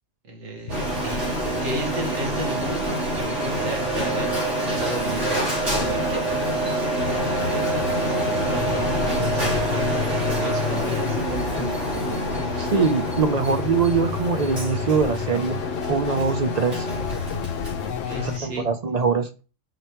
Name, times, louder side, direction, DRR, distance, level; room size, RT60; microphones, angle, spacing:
voice 1, 0.2-1.2 1.6-4.3 4.6-6.2 7.0-11.3 18.1-18.7, right 1 dB, 90° right, 3 dB, 1.8 m, -34 dB
sound 1, 0.6-18.6, left 4 dB, 50° left, 0.9 m, -40 dB
Printer, 0.7-18.4, right 1 dB, 70° right, 2.9 m, -27 dB
sound 2, 7.0-18.4, left 8 dB, 80° left, 0.9 m, -31 dB
voice 2, 12.6-15.6 15.9-16.9 18.2-19.3, right 5 dB, 50° right, 9 dB, 0.5 m, -23 dB
5.0 x 4.6 x 4.4 m, 0.33 s
omnidirectional pair, 1.3 m